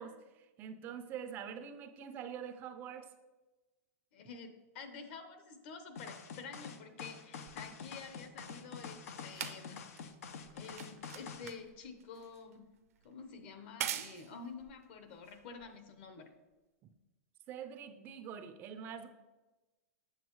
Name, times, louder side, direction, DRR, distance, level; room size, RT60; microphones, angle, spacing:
voice 1, 0.0-3.1 16.8-16.9 17.5-19.1, right 8 dB, 25° right, 8 dB, 0.4 m, -45 dB
voice 2, 4.1-9.8 10.5-12.7 13.0-16.3, left 5 dB, 45° left, 7 dB, 1.0 m, -49 dB
sound 1, 6.0-11.5, left 6 dB, 80° left, 0.8 m, -47 dB
sound 2, 7.5-16.1 16.9-17.0, right 10 dB, 80° right, 0.6 m, -46 dB
7.9 x 7.2 x 3.1 m, 1.1 s
supercardioid pair, 160°, 8 cm